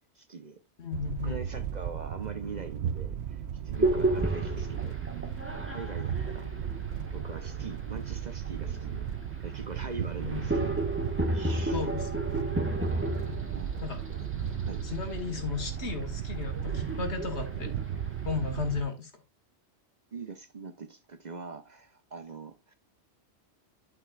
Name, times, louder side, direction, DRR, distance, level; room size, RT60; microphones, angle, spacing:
voice 1, 0.2-0.6 1.2-4.9 5.2-6.5 7.1-9.0 9.4-10.6 11.3-11.8 13.2-13.7 14.6-14.8 20.1-22.8, right 4 dB, 45° right, 0.9 m, -43 dB
voice 2, 0.8-1.6 10.2-10.5 11.7-12.3 13.8-14.0 14.8-17.8 18.2-19.1, left 5 dB, 70° left, 2.1 m, -35 dB
sound 1, 0.9-18.8, right 9 dB, 70° right, 0.8 m, -35 dB
sound 2, 3.7-18.8, right 1 dB, 10° right, 1.5 m, -34 dB
12.0 x 5.9 x 2.4 m
omnidirectional pair, 1.2 m